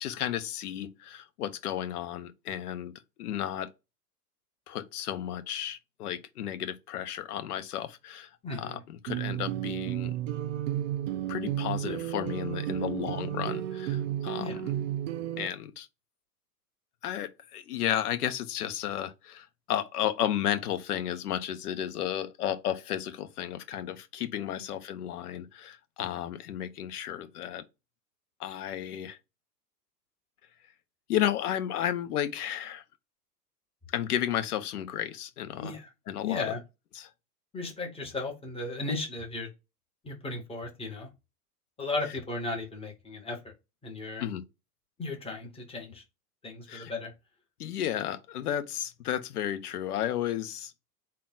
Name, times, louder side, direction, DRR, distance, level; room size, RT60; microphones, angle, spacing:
voice 1, 0.0-2.9 3.2-3.7 4.7-10.1 11.3-14.7 15.4-15.9 17.0-27.6 28.4-29.2 31.1-32.8 33.9-35.7 36.1-36.4 36.9-37.1 44.2-44.4 46.7-46.9 47.6-50.7, left 11 dB, 70° left, 0.8 m, -33 dB
voice 2, 8.4-8.8 14.4-14.6 35.6-35.9 36.2-36.6 37.5-39.5 40.0-41.1 41.8-43.5 43.8-44.2 45.0-46.0 46.4-47.1, left 3 dB, 10° left, 1.3 m, -35 dB
sound 1, 9.1-15.5, right 12 dB, 50° right, 0.6 m, -32 dB
3.7 x 2.4 x 3.7 m
hypercardioid pair, 95°, 48 cm